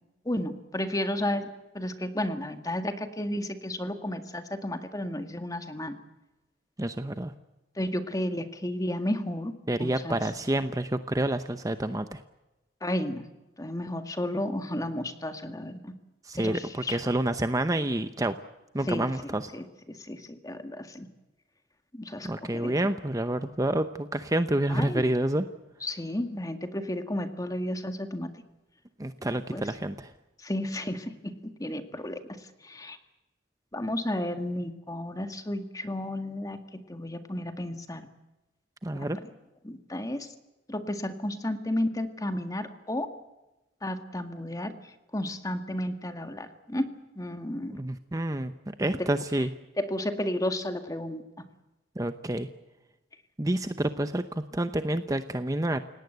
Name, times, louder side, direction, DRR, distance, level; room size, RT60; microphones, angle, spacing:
voice 1, 0.3-1.5 1.7-6.0 7.8-9.5 9.8-10.2 12.8-13.3 13.6-15.9 16.3-17.1 18.9-19.6 20.0-21.1 21.9-22.7 24.7-25.0 25.8-28.3 29.2-29.6 30.4-33.0 33.7-38.0 38.9-39.1 39.6-40.3 40.7-43.1 43.8-44.7 45.1-47.8 48.8-49.1 49.8-51.2, left 1 dB, 20° left, 7 dB, 1.9 m, -32 dB
voice 2, 6.8-7.3 9.7-12.2 16.2-18.4 18.7-19.5 22.2-25.5 29.0-30.1 38.8-39.2 47.7-48.5 48.8-49.5 52.0-52.5 53.4-55.8, right 1 dB, 20° right, 10 dB, 0.8 m, -28 dB
29.5 x 18.0 x 8.0 m, 1.0 s
head